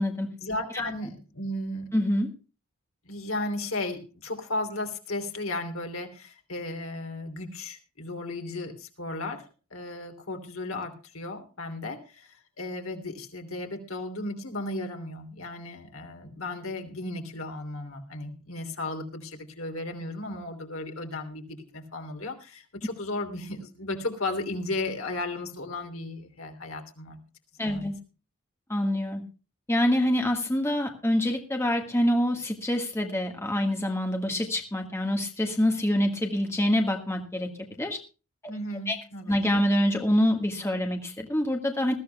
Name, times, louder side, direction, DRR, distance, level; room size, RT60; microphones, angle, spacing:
voice 1, 0.4-1.9 3.0-9.4 9.7-27.2 27.6-27.9 38.5-39.3, left 2 dB, 65° left, 4 dB, 3.1 m, -35 dB
voice 2, 1.9-2.3 27.6-28.0 28.7-29.2 29.7-38.0 38.9-39.0 39.3-41.9, left 1 dB, 10° left, 3 dB, 1.6 m, -26 dB
20.5 x 14.5 x 2.3 m, 0.33 s
head